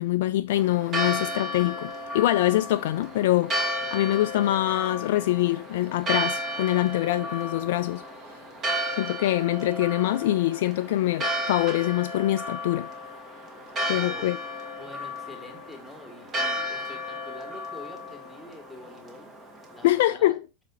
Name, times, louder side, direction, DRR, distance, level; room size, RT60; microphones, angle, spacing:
voice 1, 0.0-8.0 9.0-12.9 13.9-14.4 19.8-20.4, left 15 dB, 50° left, 0.3 m, -24 dB
Church bell, 0.5-20.0, equal, 25° right, 2.0 m, -33 dB
voice 2, 13.9-14.3 14.8-19.3 19.7-20.4, left 2 dB, ahead, 2.3 m, -46 dB
7.1 x 5.1 x 5.8 m
figure-of-eight pair, 90°, 0 cm